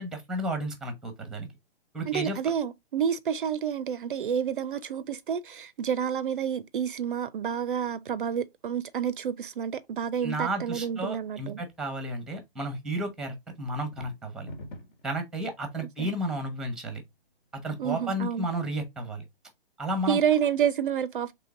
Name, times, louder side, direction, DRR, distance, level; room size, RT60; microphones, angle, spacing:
voice 1, 0.0-1.5 1.9-2.4 10.2-14.5 15.0-17.0 17.6-19.2 19.8-20.2, right 1 dB, ahead, 0.8 m, -32 dB
voice 2, 2.1-11.6 16.0-16.1 17.8-18.5 20.1-21.3, right 8 dB, 60° right, 0.5 m, -29 dB
sound 1, 13.8-15.1, equal, 50° left, 1.2 m, -42 dB
3.8 x 3.2 x 3.5 m
figure-of-eight pair, 120°, 30 cm